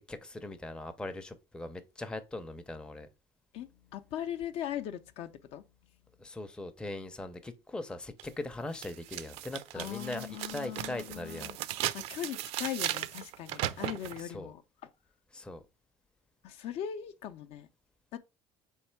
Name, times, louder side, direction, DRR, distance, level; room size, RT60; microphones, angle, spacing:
voice 1, 0.0-3.1 6.2-11.6 14.3-14.5 15.3-15.6, left 2 dB, 10° left, 0.5 m, -40 dB
voice 2, 3.5-5.7 9.7-11.6 11.9-14.6 16.4-17.7 18.1-18.2, left 10 dB, 65° left, 0.5 m, -39 dB
sound 1, 8.2-8.3 8.8-14.2, right 13 dB, 70° right, 0.4 m, -37 dB
3.5 x 3.2 x 4.4 m
cardioid pair, 135°, 11 cm